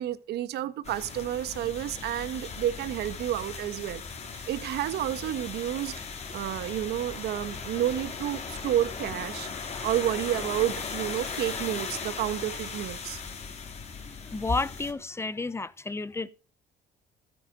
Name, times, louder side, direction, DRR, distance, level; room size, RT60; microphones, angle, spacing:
voice 1, 0.0-4.0 4.5-6.0 6.3-13.2, right 12 dB, 75° right, 1.2 m, -30 dB
sound 1, 0.8-14.9, left 5 dB, 40° left, 3.2 m, -38 dB
voice 2, 14.0-16.3, left 3 dB, 15° left, 0.8 m, -31 dB
14.5 x 8.6 x 5.0 m
cardioid pair, 110°, 17 cm